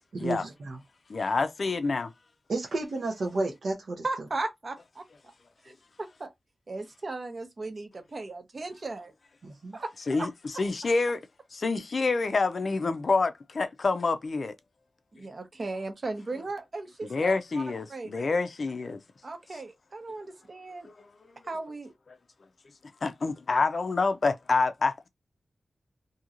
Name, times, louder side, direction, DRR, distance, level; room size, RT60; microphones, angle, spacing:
voice 1, 0.1-0.8 2.5-4.0 9.4-9.8, right 2 dB, 75° right, 0.8 m, -32 dB
voice 2, 1.1-2.1 10.1-10.3 10.6-11.2 11.5-14.5 17.1-19.0 23.0-25.1, left 3 dB, 55° left, 0.4 m, -27 dB
voice 3, 4.0-5.0 5.6-6.3 6.7-9.1 9.7-10.3 15.1-17.6 17.9-18.2 19.2-20.9 21.4-21.9, right 3 dB, 45° right, 0.8 m, -36 dB
2.9 x 2.7 x 2.5 m
wide cardioid pair, 120°, 0 cm